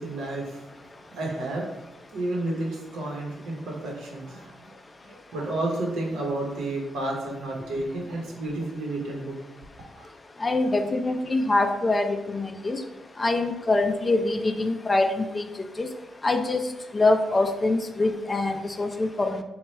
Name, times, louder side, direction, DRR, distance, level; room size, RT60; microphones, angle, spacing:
voice 1, 0.0-1.7 2.1-9.3 10.0-10.1, right 2 dB, 85° right, -1 dB, 0.9 m, -31 dB
voice 2, 10.4-12.8 13.2-15.4 15.8-15.9 16.2-16.6 16.9-19.4, left 2 dB, 25° left, 7 dB, 0.3 m, -24 dB
3.2 x 2.2 x 4.2 m, 0.98 s
cardioid pair, 95°, 0 cm